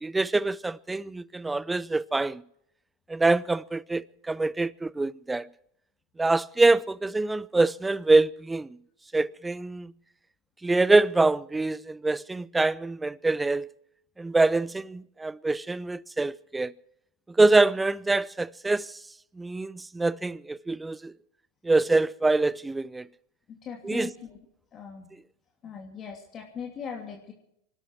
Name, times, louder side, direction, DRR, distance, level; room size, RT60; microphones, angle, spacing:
voice 1, 0.0-2.4 3.1-5.5 6.2-8.7 9.1-9.9 10.6-13.7 14.2-16.7 17.3-19.0 19.4-21.1 21.6-23.1 23.8-24.1, right 2 dB, 10° right, 0.5 m, -25 dB
voice 2, 23.5-24.4 24.7-25.1 25.6-27.3, left 7 dB, 35° left, 2.9 m, -39 dB
25.5 x 12.5 x 4.7 m
hypercardioid pair, 90°, 0 cm